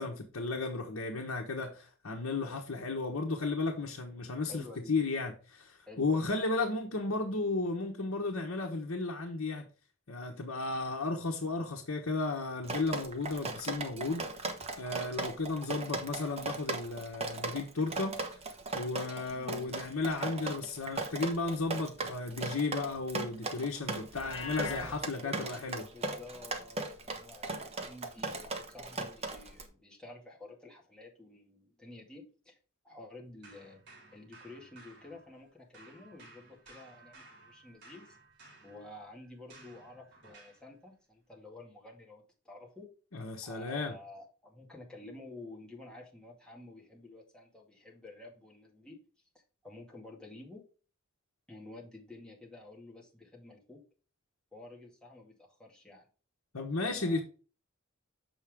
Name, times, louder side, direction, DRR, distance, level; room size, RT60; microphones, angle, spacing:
voice 1, 0.0-9.6 10.1-14.3 14.8-18.2 18.7-25.9 43.1-43.9 56.5-57.2, left 3 dB, 80° left, 1.2 m, -34 dB
voice 2, 4.5-4.9 5.9-6.3 19.3-19.8 24.6-25.4 25.9-32.6 32.8-33.8 34.1-38.2 38.6-42.9 43.4-49.0 49.6-50.6 51.5-53.8 54.5-56.1 56.8-57.2, left 2 dB, 5° left, 2.1 m, -51 dB
Drip, 12.6-29.7, right 3 dB, 30° right, 1.1 m, -38 dB
Livestock farm animals working animals, 24.1-25.0, left 4 dB, 65° left, 1.4 m, -40 dB
sound 1, 33.4-35.5 35.7-40.7, right 3 dB, 60° right, 2.8 m, -57 dB
7.3 x 5.6 x 3.6 m
head